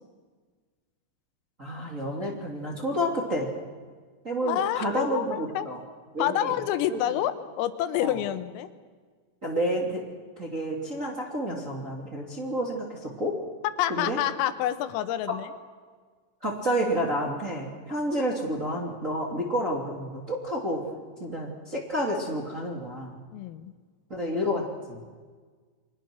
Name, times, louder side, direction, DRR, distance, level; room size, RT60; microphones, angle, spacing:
voice 1, 1.6-3.5 4.2-5.8 6.1-6.6 6.9-7.0 8.0-8.2 9.4-10.0 10.4-13.3 13.9-14.2 15.3-15.4 16.4-20.8 21.2-23.2 24.1-25.0, equal, 25° right, -1 dB, 2.1 m, -30 dB
voice 2, 4.4-5.7 6.2-8.7 13.8-15.5 23.3-23.7, left 12 dB, 90° left, 11 dB, 3.7 m, -28 dB
29.5 x 24.0 x 6.2 m, 1.5 s
omnidirectional pair, 5.9 m